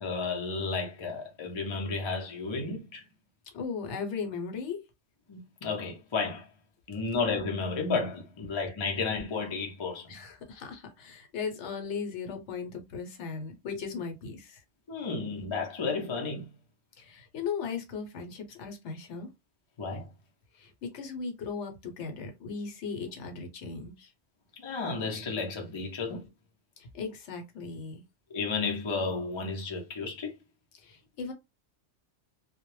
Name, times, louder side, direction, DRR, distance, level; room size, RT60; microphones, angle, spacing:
voice 1, 0.0-3.0 5.3-6.5 6.9-10.1 14.9-16.5 19.8-20.1 24.6-26.3 28.3-30.4, left 4 dB, 45° left, 0.4 m, -32 dB
voice 2, 3.5-4.8 10.1-14.6 17.0-19.3 20.5-24.1 26.8-28.0 30.7-31.3, left 5 dB, 75° left, 0.9 m, -37 dB
2.1 x 2.0 x 3.0 m
omnidirectional pair, 1.2 m